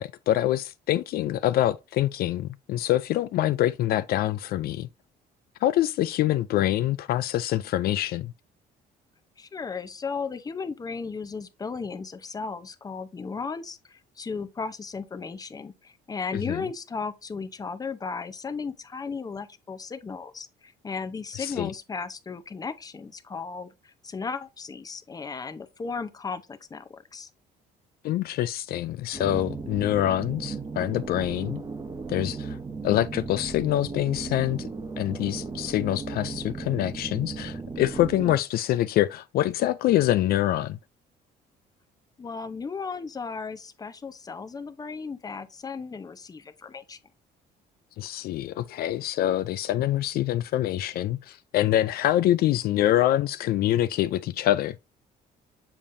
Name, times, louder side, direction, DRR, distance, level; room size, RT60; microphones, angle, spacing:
voice 1, 0.0-4.9 5.6-8.3 16.5-16.6 21.4-21.7 28.0-31.6 32.1-32.6 32.8-34.7 35.0-40.8 48.0-54.8, left 13 dB, 65° left, 0.4 m, -25 dB
voice 2, 9.4-27.3 42.2-47.0, left 5 dB, 20° left, 0.7 m, -35 dB
sound 1, 29.1-38.4, right 4 dB, 20° right, 1.0 m, -36 dB
7.2 x 5.0 x 2.6 m
cardioid pair, 110°, 17 cm